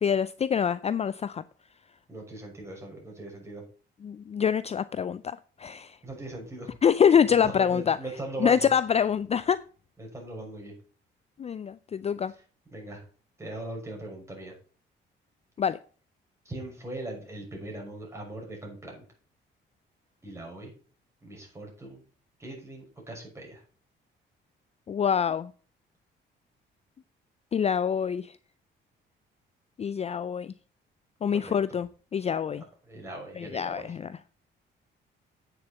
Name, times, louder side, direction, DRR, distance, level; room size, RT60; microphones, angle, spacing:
voice 1, 0.0-1.4 4.0-6.0 6.8-8.0 8.4-9.6 11.4-12.3 15.6-15.8 24.9-25.5 27.5-28.3 29.8-30.5 31.2-32.6 33.4-34.1, left 7 dB, 30° left, 0.4 m, -25 dB
voice 2, 2.1-3.6 6.0-6.8 7.4-8.7 10.0-10.7 12.7-13.0 13.4-14.5 16.4-19.0 20.2-20.7 21.2-22.0 22.4-23.6 31.3-31.5 32.8-33.9, right 1 dB, 15° right, 6.0 m, -40 dB
8.9 x 6.8 x 5.7 m
cardioid pair, 90°, 20 cm